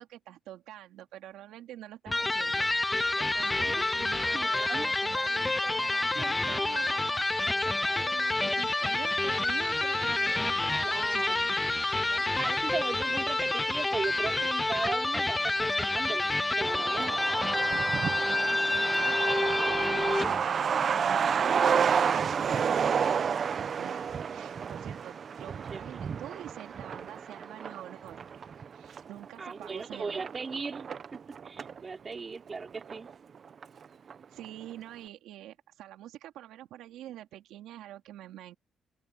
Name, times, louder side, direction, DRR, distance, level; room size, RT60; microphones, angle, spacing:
voice 1, 0.0-11.3 11.7-12.6 18.3-28.4 28.7-30.2 34.3-38.5, right 13 dB, 90° right, 3.2 m, -46 dB
Electric guitar, 2.1-20.4, left 2 dB, 15° left, 0.6 m, -28 dB
voice 2, 4.3-4.9 10.7-11.4 12.4-16.3 16.6-17.3 19.9-20.1 25.7-25.8 29.4-31.2 31.4-33.1, right 4 dB, 35° right, 4.5 m, -37 dB
Truck, 16.6-31.8 32.1-32.2 32.5-33.4 33.6-33.7 34.1-34.5, right 7 dB, 50° right, 1.0 m, -30 dB
open air
cardioid pair, 90°, 0 cm